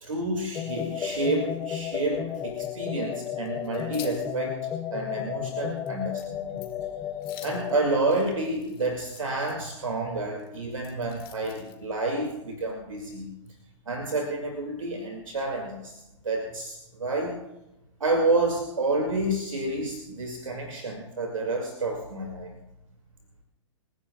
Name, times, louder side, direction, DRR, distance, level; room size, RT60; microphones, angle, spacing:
voice 1, 0.0-6.6 7.4-13.3 13.9-17.4 18.0-22.5, right 2 dB, 75° right, 2 dB, 2.2 m, -29 dB
sound 1, 0.5-7.9, left 9 dB, 15° left, 0.6 m, -33 dB
sound 2, 3.1-4.3 4.7-4.8 5.2-5.3 5.6-5.9 6.1-6.3 6.6-6.8 7.2-9.5 10.4-11.9, left 11 dB, 45° left, 2.0 m, -47 dB
27.5 x 15.5 x 2.3 m, 0.94 s
figure-of-eight pair, 115°, 17 cm